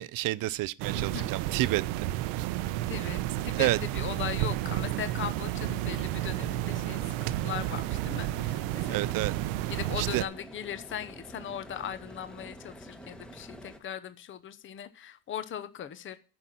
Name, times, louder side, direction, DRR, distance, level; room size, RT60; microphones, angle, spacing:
voice 1, 0.0-2.1 2.4-2.5 3.5-3.8 8.9-9.3 10.0-10.2, right 18 dB, 45° right, 0.5 m, -29 dB
sound 1, 0.8-10.2, right 15 dB, 75° right, 0.9 m, -31 dB
voice 2, 0.9-1.3 2.9-9.0 9.7-16.2, left 9 dB, 25° left, 0.9 m, -39 dB
sound 2, 3.2-13.8, equal, ahead, 1.2 m, -49 dB
10.0 x 5.9 x 7.6 m
cardioid pair, 135°, 47 cm